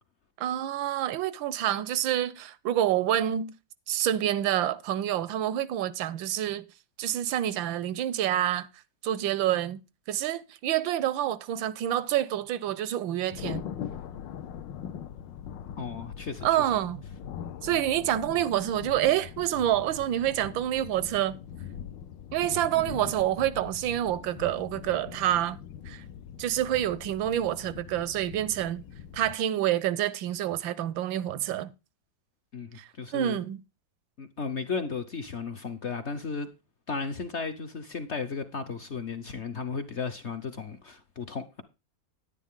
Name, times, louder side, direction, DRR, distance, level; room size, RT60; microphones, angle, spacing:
voice 1, 0.4-3.5 3.9-6.6 7.0-8.7 9.0-9.8 10.1-13.6 16.4-17.0 17.6-21.4 22.3-25.6 25.9-26.0 26.4-28.8 29.1-31.7 32.7-33.6, right 12 dB, 85° right, 1.5 m, -27 dB
Thunder, 13.3-29.3, left 8 dB, 75° left, 1.4 m, -42 dB
voice 2, 15.8-16.5 22.7-23.0 32.5-33.4 34.2-36.5 36.9-41.6, left 5 dB, 50° left, 0.8 m, -35 dB
10.0 x 10.0 x 3.6 m
omnidirectional pair, 2.1 m